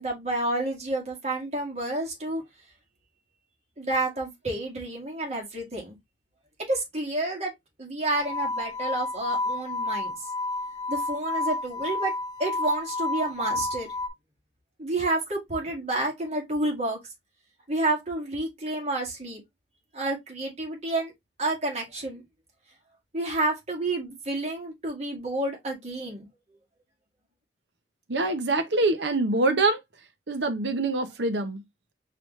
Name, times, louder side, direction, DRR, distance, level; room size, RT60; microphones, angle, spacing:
voice 1, 0.0-2.4 3.8-6.0 6.7-7.5 7.8-10.2 10.9-12.1 12.4-13.9 14.8-17.0 17.7-19.4 19.9-21.1 21.4-22.2 23.1-26.3, right 2 dB, 40° right, 1.9 m, -29 dB
sound 1, 8.1-14.1, left 2 dB, 20° left, 0.6 m, -30 dB
voice 2, 28.1-29.8 30.3-31.6, right 2 dB, 75° right, 0.8 m, -25 dB
4.8 x 3.0 x 3.0 m
head